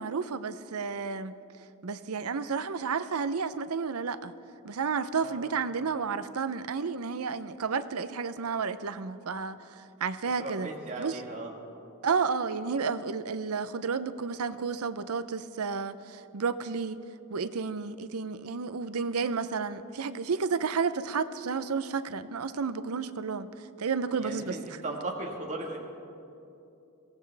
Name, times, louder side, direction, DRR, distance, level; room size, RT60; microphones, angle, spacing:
voice 1, 0.0-1.3 1.8-4.3 4.6-10.7 11.0-11.2 12.0-17.0 17.3-23.5 23.8-24.8, right 5 dB, 80° right, 12 dB, 0.6 m, -31 dB
voice 2, 10.4-11.5 24.2-25.8, right 2 dB, 35° right, -1 dB, 1.6 m, -37 dB
22.5 x 17.5 x 3.4 m, 2.8 s
head